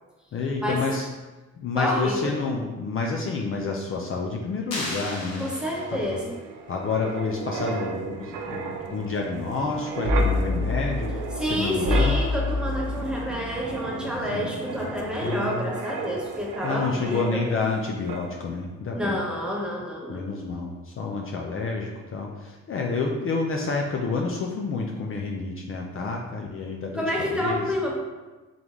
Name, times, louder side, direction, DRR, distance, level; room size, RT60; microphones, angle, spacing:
voice 1, 0.3-1.1 1.6-5.4 5.9-6.2 6.7-11.1 11.4-12.2 14.3-14.5 15.2-15.7 16.6-19.2 20.1-27.6, left 4 dB, 45° left, 0 dB, 0.5 m, -29 dB
voice 2, 1.7-2.4 5.4-6.4 11.4-17.4 18.9-20.3 26.9-28.0, equal, 5° right, -4 dB, 1.0 m, -29 dB
sound 1, 4.7-6.2, left 2 dB, 60° left, 1.3 m, -35 dB
Wind, 5.5-17.8 18.1-18.3, equal, 85° right, 0.6 m, -30 dB
3.8 x 3.5 x 3.0 m, 1.2 s
cardioid pair, 90°, 30 cm